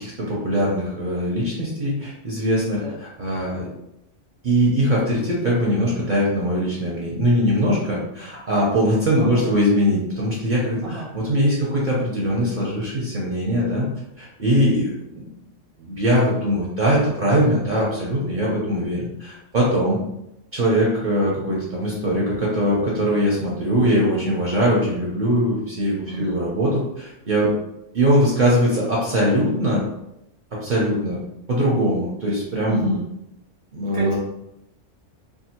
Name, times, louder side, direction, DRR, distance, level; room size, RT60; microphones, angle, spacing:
voice 1, 0.0-3.7 4.4-13.9 14.2-15.3 15.8-20.0 20.5-27.5 27.9-29.8 30.5-31.2 31.5-33.0 33.7-34.2, equal, 50° right, -5 dB, 0.6 m, -21 dB
voice 2, 26.1-26.4 32.7-33.0 33.9-34.2, right 3 dB, 5° left, -5 dB, 0.5 m, -29 dB
2.6 x 2.3 x 2.8 m, 0.83 s
omnidirectional pair, 1.3 m